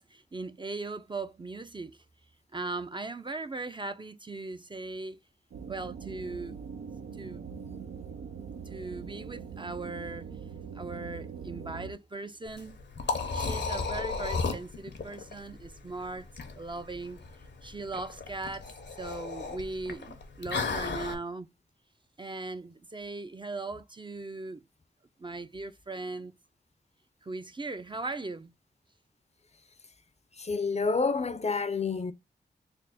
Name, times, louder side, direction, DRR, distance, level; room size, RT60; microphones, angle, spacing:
voice 1, 0.0-2.0 2.5-5.2 5.7-6.6 7.2-7.5 8.7-10.3 10.7-12.7 13.3-16.3 16.6-17.2 17.6-18.7 19.0-21.5 22.2-24.6 25.2-26.3 27.2-28.5, right 3 dB, 25° right, 0.4 m, -38 dB
sound 1, 5.5-11.9, right 6 dB, 90° right, 0.4 m, -42 dB
Liquid, 12.5-21.1, left 4 dB, 75° left, 0.8 m, -35 dB
voice 2, 30.3-32.1, left 4 dB, 35° left, 0.5 m, -28 dB
3.4 x 2.0 x 3.9 m
cardioid pair, 40°, 19 cm